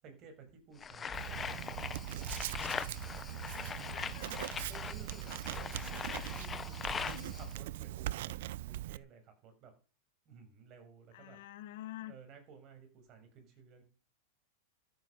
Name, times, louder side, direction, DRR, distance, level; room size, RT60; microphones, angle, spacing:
voice 1, 0.0-2.5 4.7-9.7 10.2-11.4 12.0-13.8, right 6 dB, 40° right, 6.5 m, -55 dB
sound 1, 0.8-7.5, left 6 dB, 20° left, 1.0 m, -41 dB
Writing, 1.1-9.0, right 15 dB, 65° right, 0.7 m, -41 dB
voice 2, 3.8-4.4 6.7-7.3 11.1-12.1, left 14 dB, 65° left, 1.6 m, -48 dB
13.5 x 9.5 x 6.7 m
hypercardioid pair, 125°, 0 cm